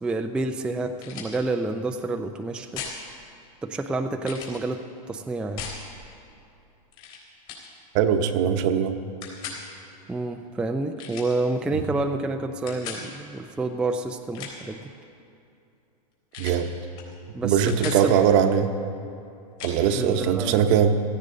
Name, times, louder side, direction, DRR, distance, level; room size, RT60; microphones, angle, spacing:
voice 1, 0.0-2.8 3.6-4.8 5.1-5.6 10.1-14.8 17.3-18.2 19.9-20.6, right 2 dB, 5° right, 5 dB, 0.4 m, -28 dB
sound 1, 1.0-1.4 2.7-3.0 4.2-4.6 5.6-5.8 6.9-7.2 7.5-7.7 9.2-9.6 11.0-11.4 12.7-13.0 14.2-14.7 16.3-16.6 17.0-17.1 17.4-18.0 19.6-19.8, left 6 dB, 45° left, 4.0 m, -37 dB
voice 2, 7.9-9.0 11.7-11.8 16.4-16.7 17.4-18.7 19.6-21.0, right 8 dB, 50° right, 8 dB, 0.9 m, -21 dB
16.5 x 15.0 x 3.8 m, 2.6 s
supercardioid pair, 135°, 20 cm